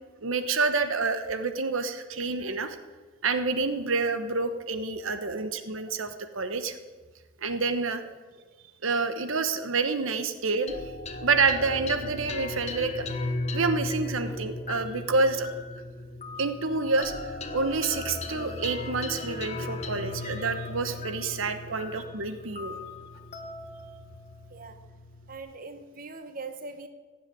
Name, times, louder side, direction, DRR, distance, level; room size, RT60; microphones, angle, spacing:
voice 1, 0.2-2.8 3.2-6.8 7.4-8.0 8.8-10.8 11.2-13.1 13.5-15.5 16.4-22.7, right 4 dB, 80° right, 9 dB, 1.1 m, -28 dB
voice 2, 5.2-5.5 8.0-8.2 21.6-21.9 24.5-24.8 25.3-26.9, right 3 dB, 40° right, 8 dB, 1.0 m, -42 dB
sound 1, 10.7-25.4, left 2 dB, 35° left, 1.2 m, -37 dB
16.5 x 7.5 x 10.0 m, 1.4 s
head